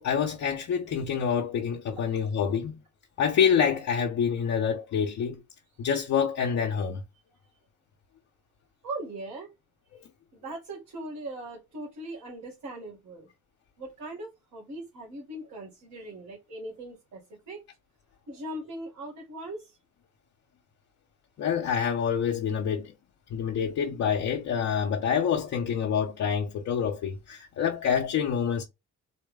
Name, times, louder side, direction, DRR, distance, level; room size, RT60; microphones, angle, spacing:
voice 1, 0.0-2.8 3.2-5.4 5.8-7.0 9.9-10.0 21.4-22.9 23.3-28.6, left 7 dB, 65° left, 0.8 m, -27 dB
voice 2, 8.8-9.5 10.3-13.3 13.8-17.2 17.5-17.6 18.3-19.7, right 1 dB, 75° right, 2.2 m, -39 dB
4.1 x 2.2 x 3.5 m
cardioid pair, 90°, 30 cm